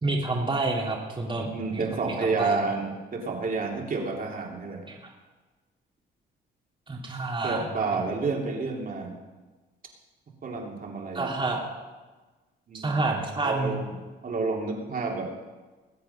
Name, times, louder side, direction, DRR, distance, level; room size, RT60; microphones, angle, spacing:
voice 1, 0.0-2.6 4.9-5.1 6.9-8.0 11.1-11.6 12.7-13.8, right 2 dB, 25° right, -2 dB, 2.4 m, -29 dB
voice 2, 1.4-4.8 7.4-9.2 10.4-11.3 12.7-14.0 14.2-15.3, right 4 dB, 45° right, 0 dB, 2.9 m, -30 dB
20.5 x 7.9 x 5.6 m, 1.3 s
cardioid pair, 90°, 20 cm